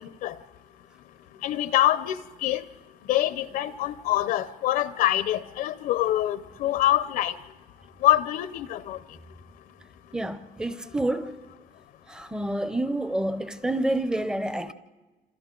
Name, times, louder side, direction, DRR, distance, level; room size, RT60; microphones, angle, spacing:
voice 1, 1.4-2.6 3.1-7.3 8.0-9.0, left 14 dB, 75° left, 0.6 m, -25 dB
voice 2, 10.1-11.4 12.1-14.7, right 1 dB, 5° right, 0.6 m, -28 dB
27.5 x 27.0 x 3.8 m
cardioid pair, 175°, 15 cm